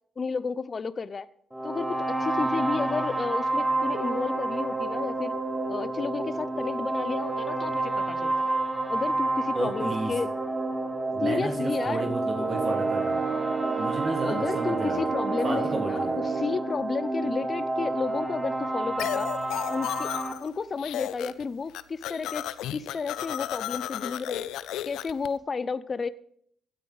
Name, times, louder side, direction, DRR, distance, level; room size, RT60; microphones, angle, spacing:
voice 1, 0.2-1.3 1.6-5.3 5.7-8.5 8.9-10.3 11.2-12.1 14.2-19.3 19.7-20.1 20.4-24.5 24.8-26.1, left 5 dB, 40° left, 0.5 m, -32 dB
sound 1, 1.5-20.3, right 2 dB, 5° right, 1.1 m, -29 dB
voice 2, 9.5-10.1 11.1-13.2 13.8-15.0 15.4-16.2, right 2 dB, 40° right, 1.8 m, -32 dB
sound 2, 12.4-16.6, right 6 dB, 65° right, 1.7 m, -31 dB
sound 3, 19.0-20.5 20.8-21.4 21.7-25.3, left 12 dB, 90° left, 0.5 m, -33 dB
16.0 x 9.7 x 4.0 m
cardioid pair, 90°, 0 cm